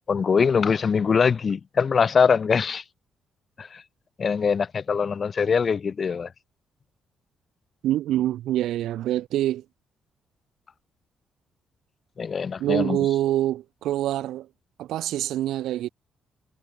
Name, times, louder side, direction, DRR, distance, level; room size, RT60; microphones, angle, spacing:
voice 1, 0.1-2.8 3.6-3.8 4.2-6.3 12.2-13.0, left 6 dB, 40° left, 0.9 m, -22 dB
voice 2, 7.8-9.6 12.6-14.5 14.8-15.9, right 13 dB, 60° right, 0.4 m, -25 dB
figure-of-eight pair, 40°, 0 cm